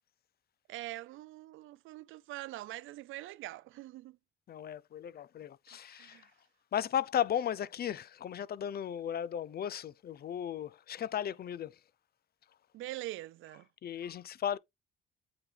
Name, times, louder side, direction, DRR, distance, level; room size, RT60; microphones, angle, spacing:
voice 1, 0.7-4.2 5.7-6.3 12.7-13.7, right 17 dB, 85° right, 0.5 m, -44 dB
voice 2, 4.5-6.3 6.7-11.8 13.8-14.6, left 9 dB, 50° left, 0.6 m, -35 dB
8.7 x 4.0 x 3.3 m
cardioid pair, 90°, 20 cm